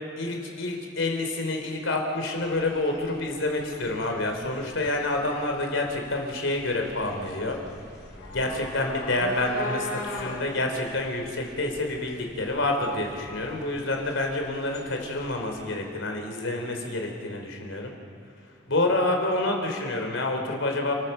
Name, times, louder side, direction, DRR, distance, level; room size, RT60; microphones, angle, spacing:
voice 1, 0.2-7.6 8.3-17.9 18.7-20.9, left 2 dB, 90° left, 3 dB, 3.4 m, -28 dB
sound 1, 2.4-15.5, left 2 dB, 55° left, 3.4 m, -40 dB
29.5 x 14.5 x 6.7 m, 2.5 s
head